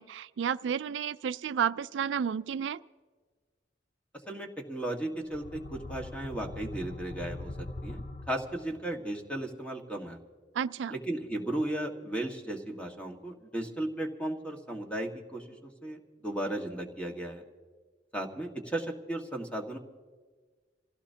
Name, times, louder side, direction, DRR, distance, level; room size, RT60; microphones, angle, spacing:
voice 1, 0.0-2.8 10.5-11.0, right 7 dB, 90° right, 15 dB, 0.4 m, -31 dB
voice 2, 4.3-10.2 10.9-17.4 18.1-19.8, right 1 dB, 5° left, 1 dB, 1.6 m, -35 dB
sound 1, 5.2-9.0, left 2 dB, 45° left, 0.7 m, -42 dB
27.0 x 16.5 x 2.8 m, 1.4 s
head